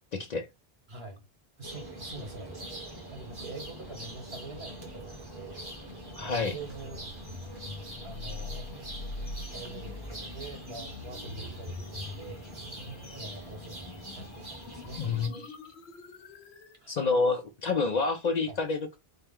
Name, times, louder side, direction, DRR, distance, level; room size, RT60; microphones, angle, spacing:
voice 1, 0.1-0.5 6.2-6.5 15.0-15.6 16.9-19.0, left 4 dB, 55° left, 0.5 m, -28 dB
voice 2, 0.9-1.3 1.6-2.6 3.1-5.7 6.2-7.1 8.0-8.7 9.5-12.4 13.1-15.1 16.8-17.0 18.0-18.1 18.5-18.6, right 3 dB, 80° right, 1.7 m, -45 dB
sound 1, 1.6-15.3, right 1 dB, 25° right, 1.1 m, -43 dB
sound 2, 4.7-16.8, left 2 dB, 90° left, 1.0 m, -44 dB
4.3 x 2.2 x 3.5 m
omnidirectional pair, 1.0 m